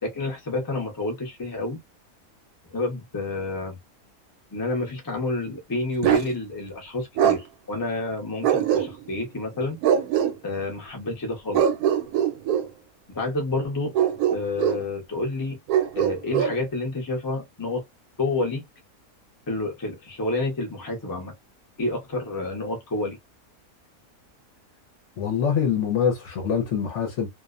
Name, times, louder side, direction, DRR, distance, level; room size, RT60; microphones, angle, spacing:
voice 1, 0.0-1.8 2.7-3.8 4.5-9.8 10.4-11.6 13.1-13.9 14.3-15.6 16.0-17.8 18.2-18.6 19.5-21.3 21.8-23.2, left 2 dB, 25° left, 0.4 m, -29 dB
Bark, 6.0-6.3 7.2-7.4 8.4-9.2 9.8-10.3 11.5-12.7 13.9-14.8 15.7-16.6, right 9 dB, 80° right, 1.1 m, -22 dB
voice 2, 25.2-27.3, left 7 dB, 60° left, 0.9 m, -24 dB
2.5 x 2.1 x 2.3 m
omnidirectional pair, 1.6 m